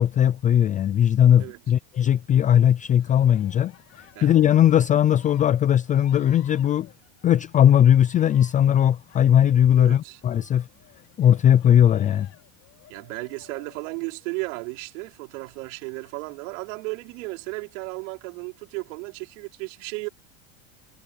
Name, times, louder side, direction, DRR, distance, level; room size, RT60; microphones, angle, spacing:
voice 1, 0.0-6.9 7.2-10.7 11.2-12.3, left 10 dB, 20° left, 0.5 m, -19 dB
Cheering, 2.9-14.6 15.8-16.7 17.4-18.1, left 12 dB, 40° left, 5.0 m, -55 dB
voice 2, 9.8-10.2 12.9-20.1, right 25 dB, 75° right, 4.7 m, -34 dB
supercardioid pair, 140°, 38 cm